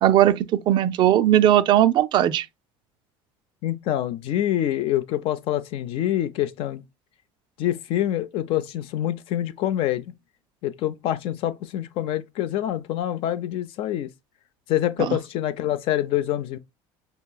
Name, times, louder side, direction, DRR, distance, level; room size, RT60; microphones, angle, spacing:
voice 1, 0.0-2.5 15.0-15.2, right 12 dB, 45° right, 0.3 m, -18 dB
voice 2, 3.6-6.8 7.6-10.1 10.6-14.1 14.7-16.6, left 12 dB, 55° left, 0.5 m, -26 dB
5.4 x 2.9 x 2.2 m
cardioid pair, 135°, 11 cm